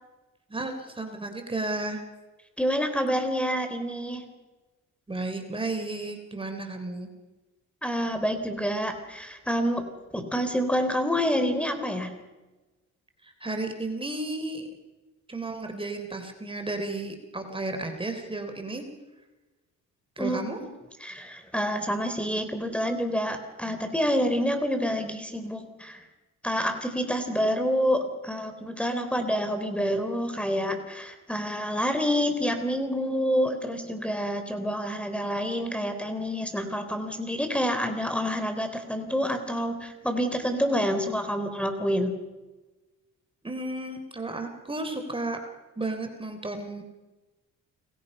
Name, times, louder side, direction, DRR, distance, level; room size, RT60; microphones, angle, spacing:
voice 1, 0.5-2.0 5.1-7.1 13.2-14.7 15.3-18.9 20.2-20.6 43.4-45.4 45.8-46.8, right 2 dB, 15° right, 5 dB, 3.6 m, -33 dB
voice 2, 2.6-4.3 7.8-12.2 20.2-20.7 21.0-26.0 26.4-42.2, equal, 5° left, 7 dB, 3.9 m, -28 dB
29.5 x 21.5 x 5.6 m, 1.2 s
cardioid pair, 90°, 30 cm